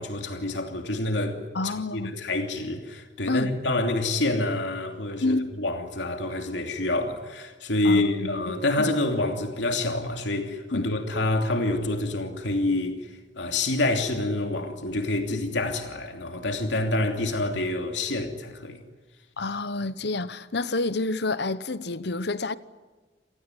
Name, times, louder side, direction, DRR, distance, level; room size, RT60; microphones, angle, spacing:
voice 1, 0.0-13.1 13.4-18.8, left 2 dB, 85° left, 2.9 m, -27 dB
voice 2, 1.5-2.2 3.3-3.5 5.2-5.5 7.8-8.9 10.7-10.9 19.4-22.5, left 2 dB, 65° left, 1.0 m, -29 dB
28.5 x 18.5 x 9.9 m
head